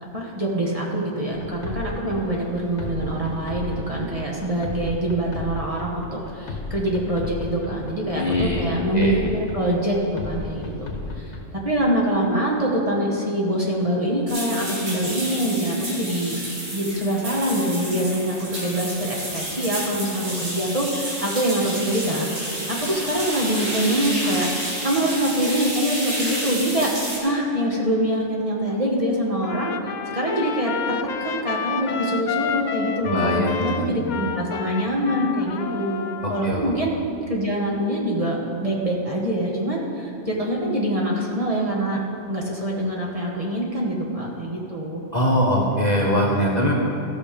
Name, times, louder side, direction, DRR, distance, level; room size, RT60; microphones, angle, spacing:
voice 1, 0.0-10.9 11.1-16.4 16.7-24.5 24.8-26.9 27.2-29.7 30.1-36.9 37.3-42.0 42.3-45.0, right 1 dB, 30° right, -3 dB, 1.4 m, -24 dB
sound 1, 1.3-11.4, left 3 dB, 60° left, 1.5 m, -35 dB
voice 2, 8.2-8.7 8.9-9.2 33.0-34.0 36.2-36.6 45.1-46.7, equal, 35° left, -2 dB, 1.1 m, -22 dB
sound 2, 14.3-27.2, right 1 dB, 80° right, 2.7 m, -30 dB
Trumpet, 29.4-36.5, left 7 dB, 80° left, 0.4 m, -30 dB
14.5 x 6.4 x 5.1 m, 2.8 s
omnidirectional pair, 1.3 m